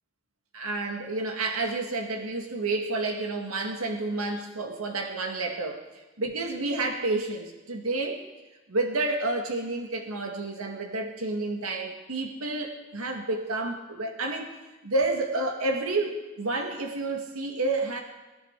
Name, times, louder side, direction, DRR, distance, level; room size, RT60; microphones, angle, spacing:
voice 1, 0.5-5.8 6.2-8.2 8.7-14.6 14.8-18.0, right 2 dB, 85° right, 3 dB, 1.9 m, -30 dB
23.0 x 11.0 x 4.7 m, 1.1 s
head